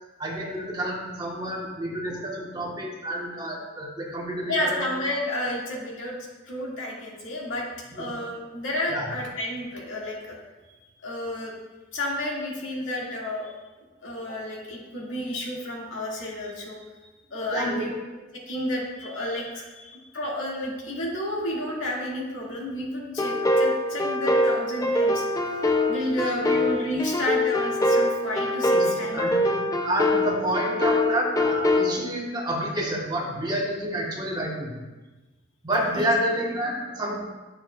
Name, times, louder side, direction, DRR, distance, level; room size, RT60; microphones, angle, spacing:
voice 1, 0.2-4.9 7.9-8.1 8.9-9.1 17.5-17.9 28.7-28.9 29.1-34.8 35.6-37.2, equal, 20° right, -2 dB, 1.3 m, -29 dB
voice 2, 4.5-6.2 6.4-7.7 8.0-10.4 10.6-11.5 11.9-13.5 14.0-16.8 17.3-17.9 18.5-25.2 25.9-29.2 35.9-36.1, left 1 dB, 85° left, -4 dB, 2.1 m, -31 dB
sound 1, 23.2-31.9, left 1 dB, 20° left, 0.4 m, -24 dB
9.8 x 7.0 x 2.4 m, 1.2 s
head